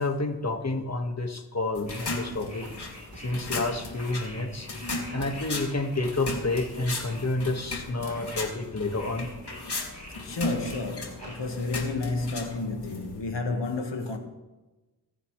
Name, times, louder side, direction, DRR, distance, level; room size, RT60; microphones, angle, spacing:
voice 1, 0.0-2.7 3.2-4.7 5.1-9.3, left 2 dB, 40° left, 1.7 m, -29 dB
sound 1, 1.7-13.2, left 2 dB, 65° left, 2.4 m, -36 dB
sound 2, 1.9-11.7, equal, 20° left, 3.8 m, -48 dB
sound 3, 2.6-3.3 5.1-5.5 8.0-8.4 11.1-11.7, right 1 dB, 55° right, 4.1 m, -45 dB
voice 2, 10.2-14.2, left 3 dB, 80° left, 1.7 m, -31 dB
25.5 x 9.7 x 3.3 m
wide cardioid pair, 60°, 42 cm